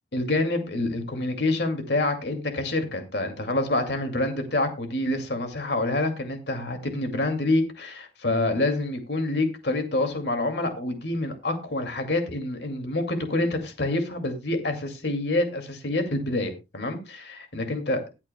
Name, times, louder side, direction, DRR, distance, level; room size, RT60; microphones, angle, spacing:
voice 1, 0.1-18.0, left 2 dB, 75° left, 6 dB, 2.2 m, -27 dB
20.5 x 8.7 x 2.2 m, 0.26 s
head